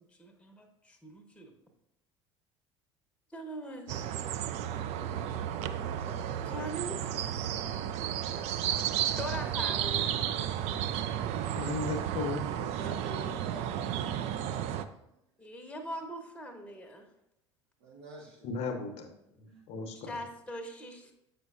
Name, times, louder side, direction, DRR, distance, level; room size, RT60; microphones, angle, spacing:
voice 1, 0.0-1.5 3.3-4.3 6.4-7.2 9.2-10.1 15.4-17.1 19.9-21.1, equal, 5° left, 3 dB, 0.8 m, -41 dB
sound 1, 3.9-14.8, right 10 dB, 45° right, 0.4 m, -33 dB
voice 2, 11.5-12.4 18.4-20.2, left 4 dB, 45° left, 4 dB, 0.8 m, -36 dB
voice 3, 12.5-13.9 17.8-18.5 19.5-19.6, right 2 dB, 65° right, -1 dB, 0.7 m, -46 dB
7.7 x 5.0 x 2.4 m, 0.84 s
figure-of-eight pair, 65°, 15 cm